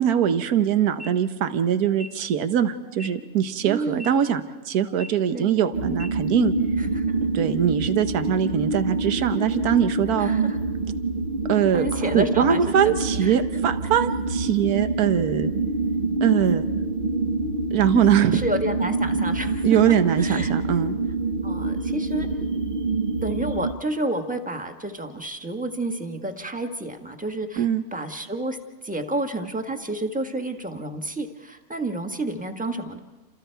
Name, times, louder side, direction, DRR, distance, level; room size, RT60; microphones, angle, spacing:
voice 1, 0.0-4.4 4.7-6.5 7.3-10.3 11.5-15.5 16.2-16.7 17.7-18.4 19.6-20.9 27.6-27.8, right 9 dB, 75° right, 10 dB, 1.5 m, -22 dB
sound 1, 1.0-1.1 1.9-2.1 2.9-3.1 3.9-4.1 4.9-5.1 5.9-6.1, left 1 dB, 20° left, 1.2 m, -39 dB
voice 2, 3.6-4.1 5.3-5.5 6.8-7.2 10.2-10.6 11.7-13.4 18.3-20.5 21.4-22.3 23.2-28.6 28.8-33.0, right 1 dB, 5° right, 5 dB, 1.2 m, -30 dB
sound 2, 5.7-23.7, right 3 dB, 45° right, 0.8 m, -26 dB
29.5 x 27.0 x 4.6 m, 1.2 s
omnidirectional pair, 1.6 m